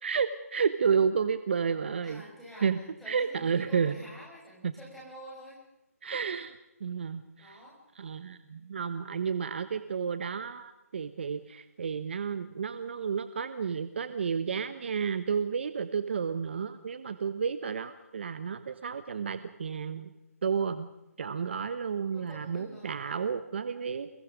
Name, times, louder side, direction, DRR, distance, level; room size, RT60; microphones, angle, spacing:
voice 1, 0.0-2.2 2.6-2.8 3.1-4.0 4.6-4.7 6.0-7.6 7.9-20.1 20.4-20.9 21.2-24.1, right 6 dB, 45° right, 11 dB, 1.3 m, -31 dB
voice 2, 2.0-2.7 3.0-5.6 7.4-7.7 22.1-22.9, equal, ahead, -6 dB, 6.2 m, -48 dB
29.0 x 21.5 x 5.3 m, 0.93 s
hypercardioid pair, 165°, 8 cm